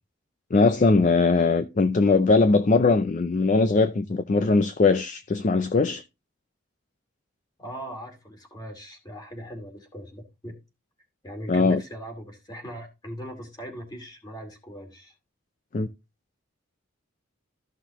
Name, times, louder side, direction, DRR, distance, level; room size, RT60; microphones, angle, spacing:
voice 1, 0.5-6.0 11.5-11.8 15.7-15.9, left 3 dB, 35° left, 0.4 m, -20 dB
voice 2, 7.6-10.6 11.2-15.1, equal, 20° left, 2.4 m, -39 dB
13.5 x 5.9 x 3.0 m
head